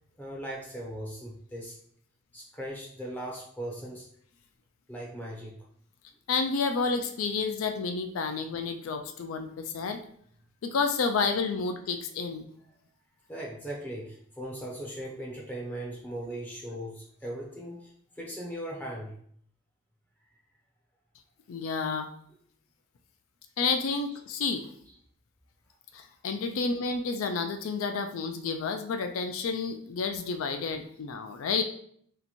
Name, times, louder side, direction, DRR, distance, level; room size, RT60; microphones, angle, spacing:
voice 1, 0.2-1.7 2.3-4.0 4.9-5.6 13.3-17.9 18.2-19.1 26.6-26.7, right 1 dB, 10° left, -2 dB, 0.5 m, -38 dB
voice 2, 6.3-10.0 10.6-12.5 21.5-22.1 23.6-24.7 25.9-31.6, left 4 dB, 85° left, 6 dB, 0.4 m, -30 dB
2.8 x 2.6 x 4.2 m, 0.63 s
head